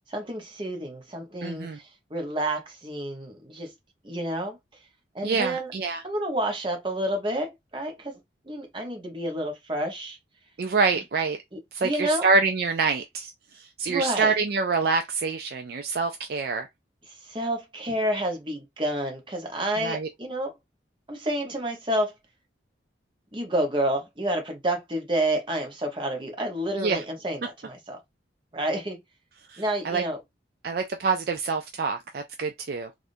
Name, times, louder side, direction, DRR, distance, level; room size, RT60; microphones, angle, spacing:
voice 1, 0.1-3.7 4.0-4.6 5.1-5.7 6.0-8.2 8.5-10.2 11.5-12.3 13.9-14.3 17.3-20.5 21.1-22.1 23.3-28.0 28.5-29.0 29.6-30.2, right 1 dB, 25° right, 0.9 m, -29 dB
voice 2, 1.4-1.8 5.2-6.0 10.6-11.4 11.7-16.7 19.8-20.1 26.8-27.0 29.5-30.0 30.6-32.9, right 4 dB, 55° right, 0.4 m, -26 dB
3.4 x 2.5 x 2.6 m
head